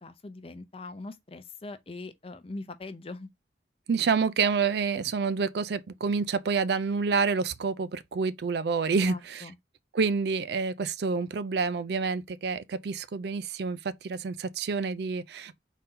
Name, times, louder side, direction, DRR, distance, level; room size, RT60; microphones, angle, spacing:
voice 1, 0.0-3.3 9.1-9.6, left 2 dB, 30° left, 0.5 m, -41 dB
voice 2, 3.9-9.5 9.9-15.6, right 5 dB, 60° right, 0.4 m, -28 dB
4.1 x 2.7 x 3.7 m
head